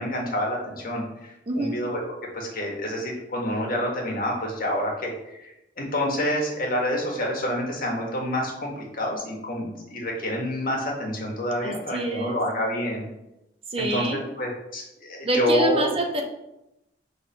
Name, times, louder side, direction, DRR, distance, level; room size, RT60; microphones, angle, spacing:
voice 1, 0.0-2.0 2.3-13.0 13.8-15.9, left 1 dB, 50° left, -1 dB, 1.8 m, -28 dB
voice 2, 1.5-1.8 11.6-12.4 13.7-14.2 15.2-16.2, right 2 dB, 30° right, 3 dB, 0.7 m, -26 dB
5.4 x 3.9 x 5.8 m, 0.90 s
head